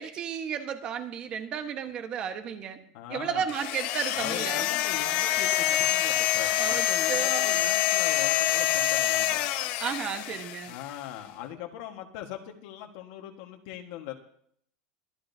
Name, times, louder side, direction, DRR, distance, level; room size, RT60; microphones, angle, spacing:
voice 1, 0.0-2.8 3.1-4.7 6.6-7.6 9.8-10.7, right 7 dB, 30° right, 7 dB, 1.3 m, -33 dB
voice 2, 2.9-3.5 4.1-9.4 10.7-14.2, left 11 dB, 60° left, 3 dB, 1.5 m, -40 dB
sound 1, 3.5-10.9, left 13 dB, 45° left, 0.9 m, -26 dB
23.5 x 11.5 x 2.8 m, 0.64 s
supercardioid pair, 165°, 3 cm